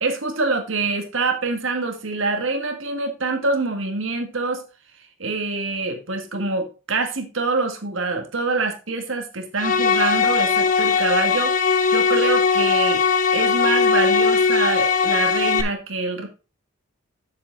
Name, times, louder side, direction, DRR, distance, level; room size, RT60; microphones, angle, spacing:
voice 1, 0.0-4.6 5.2-11.5 11.9-13.0 13.3-16.3, right 3 dB, 70° right, 5 dB, 1.8 m, -25 dB
sound 1, 9.6-15.6, left 5 dB, 40° left, 0.7 m, -19 dB
7.4 x 7.1 x 3.9 m, 0.32 s
head